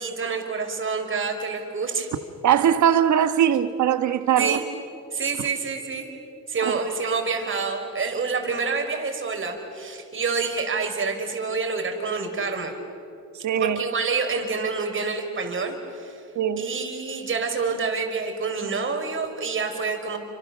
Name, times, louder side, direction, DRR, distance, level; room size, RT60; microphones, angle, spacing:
voice 1, 0.0-2.1 4.4-4.6 5.1-6.1 6.5-12.7 13.5-16.2 16.6-20.2, right 4 dB, 40° right, 4.9 m, -27 dB
voice 2, 2.4-4.6 6.6-6.8 13.4-13.8 16.3-16.7, right 9 dB, 70° right, 1.5 m, -21 dB
29.5 x 26.0 x 6.9 m
cardioid pair, 90°, 30 cm